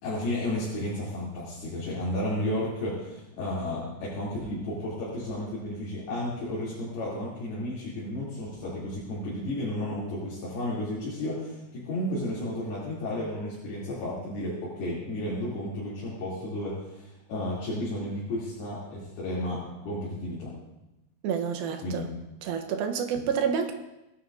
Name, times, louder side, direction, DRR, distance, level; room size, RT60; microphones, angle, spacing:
voice 1, 0.0-20.5 21.8-22.0, left 1 dB, 65° left, -8 dB, 4.7 m, -33 dB
voice 2, 21.2-22.1 22.4-23.7, right 7 dB, 75° right, 6 dB, 2.4 m, -29 dB
18.5 x 11.5 x 2.6 m, 0.94 s
omnidirectional pair, 5.0 m